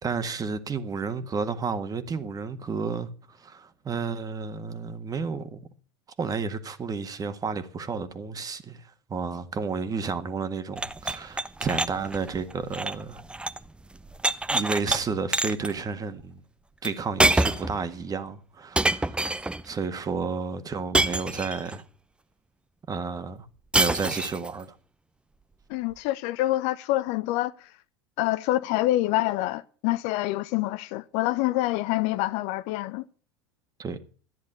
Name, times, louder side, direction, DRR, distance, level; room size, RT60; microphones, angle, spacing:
voice 1, 0.0-5.6 6.2-13.2 14.5-16.4 16.8-21.8 22.9-23.5 23.8-24.7 33.8-34.0, right 5 dB, 25° right, 1.8 m, -31 dB
sound 1, 10.8-13.7 13.9-15.0 15.3-15.7 16.8-16.9 17.2-17.8 18.8-19.6 20.9-21.8 23.7-24.5, right 2 dB, 5° right, 0.7 m, -26 dB
voice 2, 25.7-27.7 28.2-33.0, left 16 dB, 55° left, 0.7 m, -26 dB
14.0 x 10.5 x 6.8 m
hypercardioid pair, 80°, 14 cm